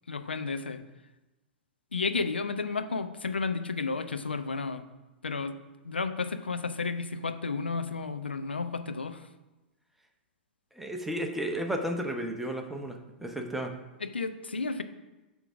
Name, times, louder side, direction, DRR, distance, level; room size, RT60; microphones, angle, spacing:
voice 1, 0.1-0.8 1.9-4.8 5.2-5.5 5.8-9.3 14.0-14.8, left 4 dB, 80° left, 8 dB, 0.6 m, -32 dB
voice 2, 10.8-13.7, equal, 5° right, 3 dB, 0.9 m, -33 dB
10.0 x 3.7 x 6.0 m, 1.1 s
figure-of-eight pair, 105°, 6 cm